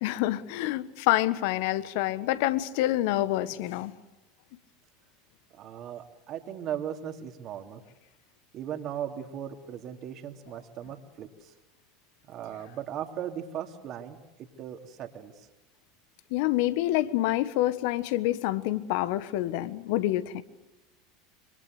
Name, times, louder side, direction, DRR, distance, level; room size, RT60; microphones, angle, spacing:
voice 1, 0.0-3.9 16.3-20.4, left 15 dB, 60° left, 15 dB, 1.3 m, -27 dB
voice 2, 5.5-7.8 8.5-11.5 12.3-15.5, right 9 dB, 45° right, 5 dB, 2.8 m, -38 dB
26.0 x 24.0 x 8.0 m, 1.1 s
figure-of-eight pair, 80°, 0 cm